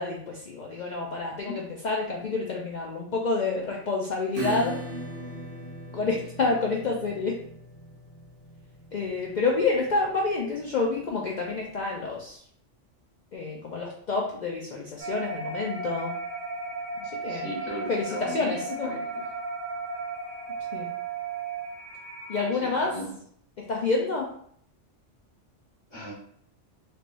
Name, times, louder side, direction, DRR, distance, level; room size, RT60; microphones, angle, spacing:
voice 1, 0.0-4.8 5.9-7.4 8.9-12.4 13.3-16.1 17.0-17.5 17.9-18.9 20.7-20.9 22.3-22.9 23.7-24.3, left 3 dB, 70° left, -2 dB, 0.4 m, -28 dB
Acoustic guitar / Strum, 4.3-11.6, right 1 dB, 85° right, 1.0 m, -39 dB
sound 1, 15.0-22.5, right 3 dB, 70° right, 1.3 m, -35 dB
voice 2, 17.3-18.5 18.8-19.3 22.5-23.1 25.9-26.1, equal, 25° left, -5 dB, 1.1 m, -37 dB
3.3 x 3.0 x 2.5 m, 0.64 s
omnidirectional pair, 1.3 m